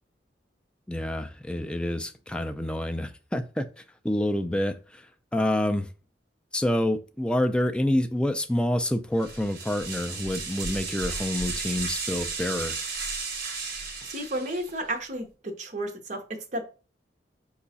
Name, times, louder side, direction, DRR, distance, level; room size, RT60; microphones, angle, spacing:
voice 1, 0.9-5.1 5.3-5.9 6.5-12.7, left 1 dB, 5° left, 0.4 m, -27 dB
sound 1, 9.2-14.8, right 4 dB, 60° right, 1.3 m, -34 dB
voice 2, 14.0-16.2 16.5-16.6, right 1 dB, 40° right, 0.8 m, -32 dB
4.8 x 2.3 x 4.0 m
head